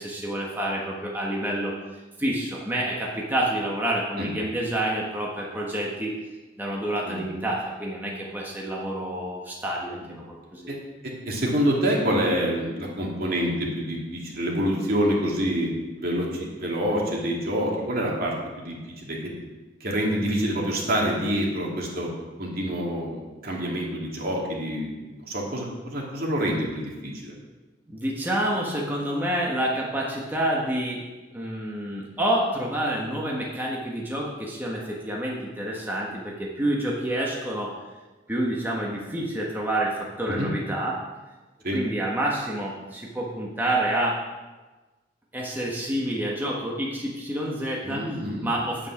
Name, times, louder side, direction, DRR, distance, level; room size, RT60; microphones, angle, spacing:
voice 1, 0.0-1.7 2.2-6.1 6.6-10.7 27.9-31.0 31.3-37.7 38.3-41.0 41.7-44.2 45.3-48.1 48.4-48.9, right 1 dB, 10° right, -3 dB, 1.4 m, -28 dB
voice 2, 11.0-19.3 19.8-22.1 22.4-24.9 25.2-27.3 40.4-40.5 41.6-41.8 47.8-48.5, equal, 55° right, -2 dB, 2.5 m, -27 dB
9.0 x 8.9 x 5.9 m, 1.2 s
head